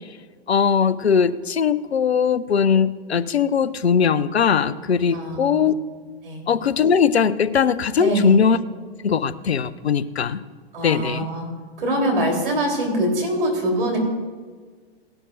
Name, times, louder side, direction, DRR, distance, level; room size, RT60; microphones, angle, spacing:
voice 1, 0.5-5.7 6.5-8.6 9.0-10.4 10.8-11.3, left 7 dB, 75° left, 17 dB, 0.5 m, -20 dB
voice 2, 5.1-5.5 6.2-6.4 8.0-8.4 10.7-11.5 11.8-14.0, right 1 dB, 60° right, 0 dB, 3.8 m, -23 dB
17.5 x 11.5 x 2.6 m, 1.5 s
figure-of-eight pair, 105°, 32 cm